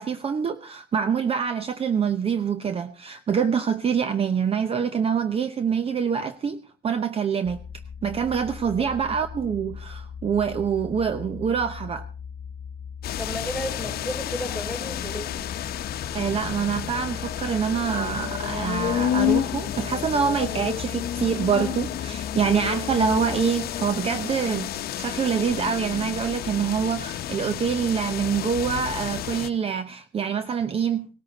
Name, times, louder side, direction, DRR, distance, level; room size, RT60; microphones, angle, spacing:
voice 1, 0.0-7.6 8.0-12.1 16.1-31.1, right 7 dB, 35° right, 0.8 m, -25 dB
sound 1, 7.4-23.4, left 6 dB, 15° left, 1.5 m, -39 dB
sound 2, 13.0-29.5, left 11 dB, 65° left, 0.9 m, -30 dB
voice 2, 13.2-15.4, equal, ahead, 4.1 m, -33 dB
18.0 x 13.5 x 4.0 m
cardioid pair, 110°, 17 cm